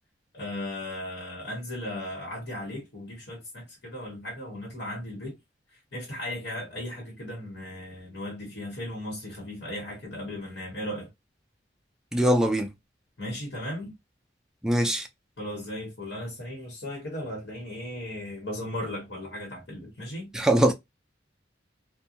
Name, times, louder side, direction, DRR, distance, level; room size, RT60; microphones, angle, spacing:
voice 1, 0.3-5.4 5.7-11.1 13.2-13.9 15.4-20.3, left 1 dB, 65° left, 1.1 m, -36 dB
voice 2, 12.1-12.7 14.6-15.1 20.3-20.7, right 1 dB, 5° right, 0.4 m, -22 dB
2.5 x 2.2 x 2.8 m
head